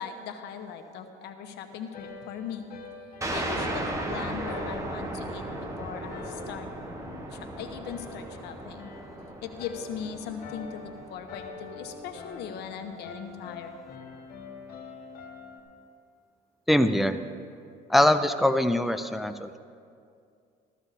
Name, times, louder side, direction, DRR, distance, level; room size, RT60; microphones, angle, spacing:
voice 1, 0.0-2.6 3.3-6.7 7.3-8.9 9.4-13.8, left 7 dB, 80° left, 6 dB, 1.2 m, -39 dB
sound 1, 1.9-15.6, left 4 dB, 60° left, 1.7 m, -46 dB
sound 2, 3.2-12.4, right 1 dB, 20° right, 1.6 m, -36 dB
voice 2, 16.7-17.2 17.9-19.6, left 1 dB, ahead, 9 dB, 0.4 m, -23 dB
14.5 x 14.0 x 4.2 m, 2.4 s
cardioid pair, 110°, 17 cm